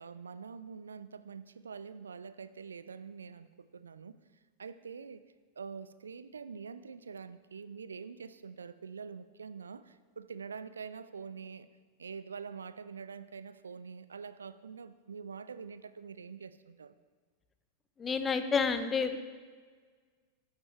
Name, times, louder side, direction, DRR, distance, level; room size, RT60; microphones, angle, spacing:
voice 1, 0.0-4.2 4.6-5.2 5.6-11.7 12.0-16.9, right 6 dB, 70° right, 14 dB, 0.4 m, -45 dB
voice 2, 18.0-19.2, left 5 dB, 20° left, 10 dB, 0.7 m, -29 dB
13.0 x 8.9 x 3.2 m, 1.6 s
figure-of-eight pair, 90°, 0 cm